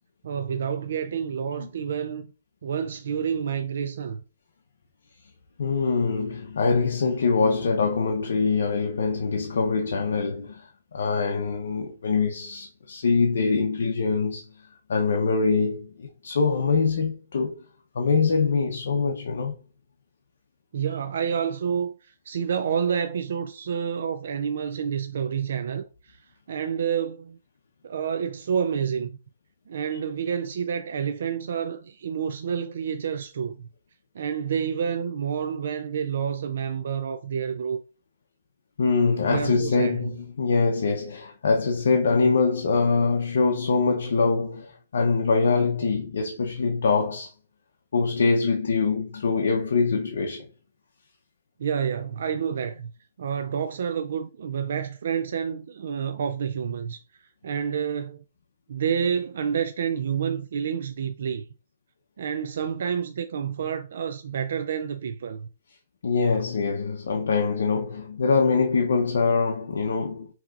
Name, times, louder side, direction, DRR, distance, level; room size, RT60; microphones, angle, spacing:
voice 1, 0.2-2.3 2.6-4.2 20.7-27.4 27.8-29.1 29.7-33.7 34.1-37.8 39.3-40.0 51.6-52.9 53.2-58.2 58.7-61.5 62.2-65.5, right 7 dB, 65° right, 0.4 m, -29 dB
voice 2, 5.6-14.5 14.9-17.6 17.9-19.5 38.8-47.3 47.9-50.5 66.0-70.3, left 4 dB, 75° left, 0.7 m, -24 dB
5.7 x 2.9 x 2.4 m
hypercardioid pair, 165°, 0 cm